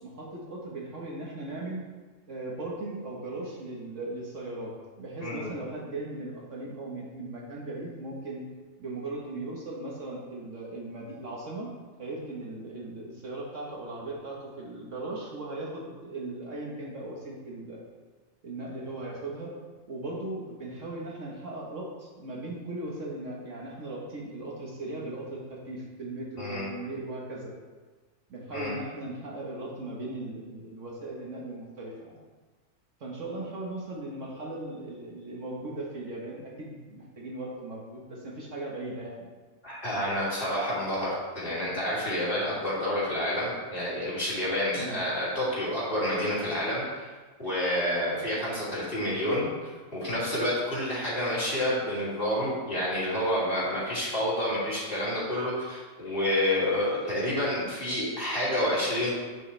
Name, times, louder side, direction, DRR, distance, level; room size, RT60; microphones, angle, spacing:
voice 1, 0.0-1.8 2.3-8.4 8.8-11.7 12.0-17.8 18.4-19.5 19.9-27.5 28.3-32.2 33.0-39.3 44.7-45.0, right 2 dB, 55° right, -3 dB, 1.5 m, -38 dB
voice 2, 39.6-47.1 47.4-59.1, left 1 dB, 35° left, -8 dB, 2.8 m, -29 dB
8.4 x 7.2 x 3.3 m, 1.4 s
omnidirectional pair, 1.6 m